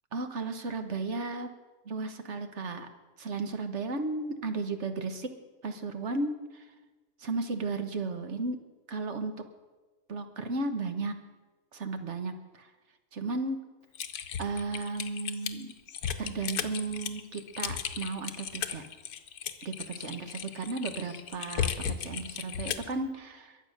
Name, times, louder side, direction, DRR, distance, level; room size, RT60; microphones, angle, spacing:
voice 1, 0.1-1.5 1.8-2.9 3.2-5.3 5.6-6.6 7.2-8.6 8.9-9.3 10.1-11.1 11.7-12.7 13.1-13.6 14.4-15.7 16.2-18.8 19.6-23.6, right 3 dB, 50° right, 8 dB, 1.4 m, -34 dB
Typing, 14.0-22.9, left 8 dB, 85° left, 1.4 m, -35 dB
22.0 x 7.9 x 6.5 m, 1.2 s
omnidirectional pair, 1.6 m